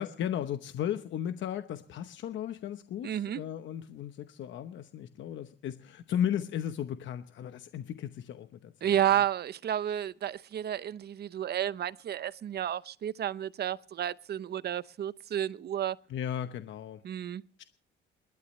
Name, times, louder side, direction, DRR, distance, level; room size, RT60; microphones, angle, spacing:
voice 1, 0.0-9.0 16.1-17.0 17.6-17.7, left 10 dB, 70° left, 0.9 m, -35 dB
voice 2, 3.0-3.4 8.8-16.0 17.0-17.4, right 10 dB, 55° right, 0.7 m, -31 dB
28.0 x 12.0 x 3.1 m
cardioid pair, 90°, 20 cm